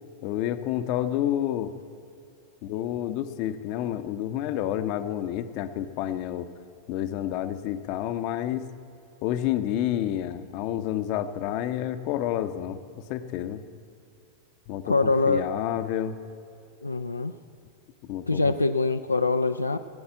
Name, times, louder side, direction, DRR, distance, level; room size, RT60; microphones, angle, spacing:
voice 1, 0.2-1.7 2.6-6.5 6.9-8.7 9.2-12.8 13.1-13.6 14.7-16.2 18.0-18.5, left 11 dB, 45° left, 11 dB, 0.7 m, -29 dB
voice 2, 14.9-15.5 16.8-17.3 18.3-19.8, left 3 dB, 80° left, 7 dB, 0.4 m, -24 dB
15.5 x 8.7 x 8.5 m, 2.6 s
figure-of-eight pair, 90°, 0 cm